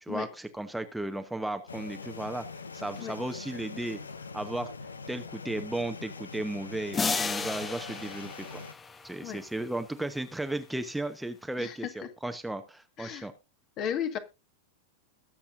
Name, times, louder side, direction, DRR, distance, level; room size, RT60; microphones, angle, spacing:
voice 1, 0.0-2.5 2.7-4.0 4.3-4.7 5.1-8.6 9.0-13.3, right 1 dB, 5° right, 1.0 m, -35 dB
sound 1, 1.7-8.7, left 4 dB, 75° left, 0.9 m, -43 dB
sound 2, 6.9-9.4, left 4 dB, 15° left, 0.8 m, -33 dB
voice 2, 11.6-11.9 13.0-13.3 13.8-14.2, left 9 dB, 35° left, 1.7 m, -34 dB
21.0 x 7.2 x 2.6 m
figure-of-eight pair, 90°, 0 cm